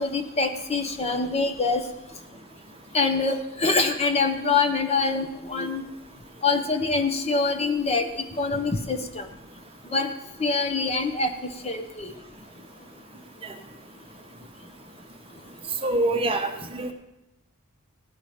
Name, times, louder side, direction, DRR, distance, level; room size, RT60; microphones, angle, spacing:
voice 1, 0.0-1.8 2.9-5.8 6.4-8.1 8.4-9.2 9.9-10.1 10.4-11.3 11.6-12.1, left 3 dB, 30° left, 6 dB, 0.7 m, -24 dB
voice 2, 15.8-16.9, right 2 dB, 25° right, 4 dB, 0.9 m, -25 dB
16.0 x 5.6 x 4.9 m, 0.89 s
head